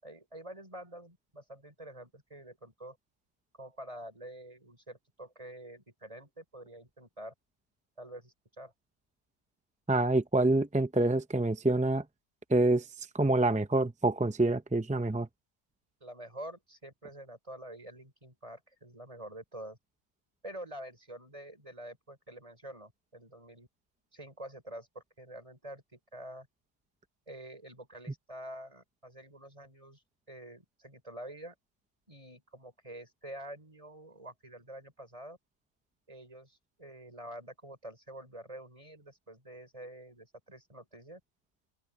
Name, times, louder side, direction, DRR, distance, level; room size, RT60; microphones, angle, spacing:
voice 1, 0.0-3.0 3.6-7.3 8.0-8.7 16.0-19.8 20.4-23.7 24.1-26.5 27.3-31.5 32.1-35.4 36.1-41.2, right 1 dB, 30° right, 6.1 m, -47 dB
voice 2, 9.9-12.0 12.5-15.3, right 2 dB, 10° right, 0.3 m, -27 dB
open air
omnidirectional pair, 1.2 m